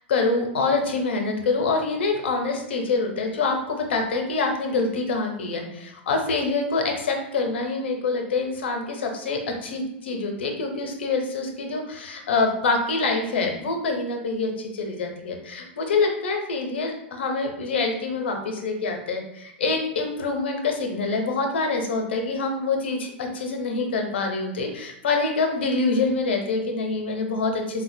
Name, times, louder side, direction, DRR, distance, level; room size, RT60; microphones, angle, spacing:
voice 1, 0.1-27.8, left 3 dB, 80° left, 3 dB, 0.6 m, -26 dB
3.8 x 2.1 x 2.6 m, 0.80 s
hypercardioid pair, 110°, 6 cm